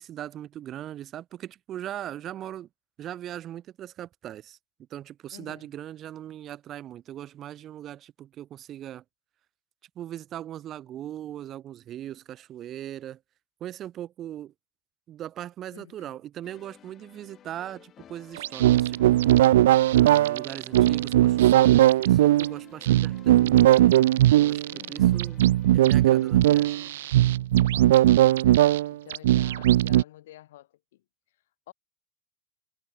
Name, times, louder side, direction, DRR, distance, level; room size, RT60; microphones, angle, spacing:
voice 1, 0.0-2.7 3.0-4.6 4.9-9.0 9.9-13.2 13.6-14.5 15.1-19.2 19.9-23.9 24.4-25.4 25.7-26.8, right 11 dB, 35° right, 5.0 m, -39 dB
voice 2, 5.3-5.7 15.7-16.2 24.7-25.3 27.7-31.0 31.7-31.8, left 15 dB, 60° left, 2.6 m, -49 dB
sound 1, 16.4-26.9, left 10 dB, 30° left, 6.8 m, -53 dB
sound 2, 18.4-30.0, right 14 dB, 65° right, 0.3 m, -19 dB
figure-of-eight pair, 80°, 0 cm